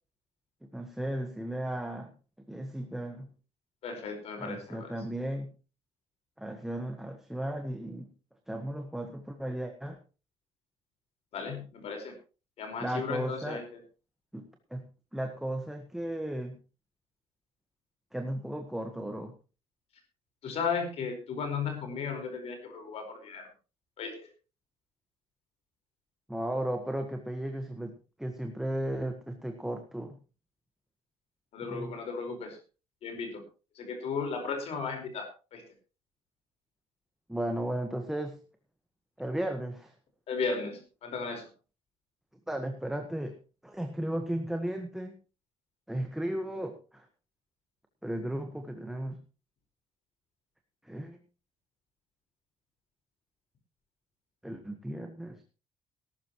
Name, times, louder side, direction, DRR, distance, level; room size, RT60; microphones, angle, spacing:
voice 1, 0.7-2.1 2.5-3.3 4.4-5.5 6.4-8.1 8.5-10.0 12.8-13.6 14.3-14.8 15.1-16.6 18.1-19.3 26.3-30.2 31.7-32.0 37.3-38.4 39.2-39.9 42.5-43.4 43.6-45.1 45.9-47.0 48.0-49.2 50.8-51.2 54.4-55.4, right 1 dB, 5° right, 4 dB, 1.5 m, -35 dB
voice 2, 3.8-4.9 11.3-12.1 12.6-13.6 20.4-23.4 24.0-24.2 31.5-32.6 33.0-33.4 33.7-35.6 40.3-41.5, left 5 dB, 60° left, 4 dB, 4.8 m, -35 dB
19.0 x 12.5 x 3.1 m, 0.34 s
cardioid pair, 140°, 12 cm